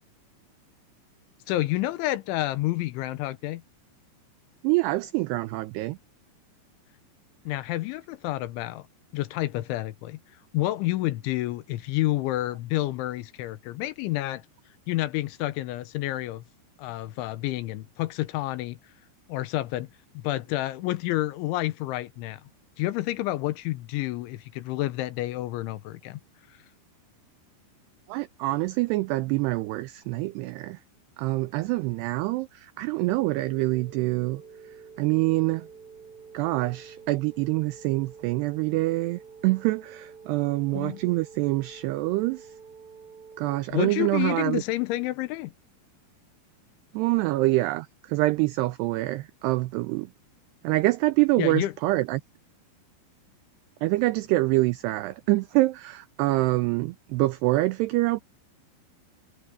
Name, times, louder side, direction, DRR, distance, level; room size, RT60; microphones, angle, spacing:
voice 1, 1.5-3.6 7.5-8.9 9.1-10.2 10.5-14.4 14.9-16.4 16.8-18.8 19.3-19.9 20.1-22.4 22.8-26.2 40.7-41.0 43.7-45.5 51.4-51.7, left 16 dB, 85° left, 3.3 m, -29 dB
voice 2, 4.6-6.0 28.1-30.8 31.2-34.4 35.0-35.7 36.3-42.5 43.4-44.6 46.9-50.1 50.6-52.2 53.8-58.2, right 20 dB, 90° right, 2.3 m, -25 dB
sound 1, 33.1-43.6, right 5 dB, 30° right, 5.7 m, -48 dB
omnidirectional pair, 5.5 m